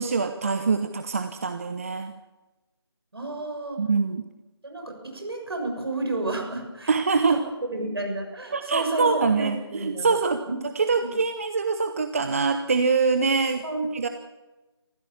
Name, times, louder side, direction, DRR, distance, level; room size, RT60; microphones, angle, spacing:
voice 1, 0.0-2.1 3.8-4.3 6.9-7.4 8.5-10.4 10.7-13.7 13.9-14.1, right 4 dB, 30° right, 8 dB, 0.8 m, -24 dB
voice 2, 3.1-3.8 4.6-6.9 7.3-7.4 7.7-10.1 10.5-10.6 11.0-11.1 13.6-14.1, right 2 dB, 65° right, 3 dB, 6.8 m, -31 dB
26.0 x 15.5 x 7.2 m, 1.1 s
figure-of-eight pair, 160°, 14 cm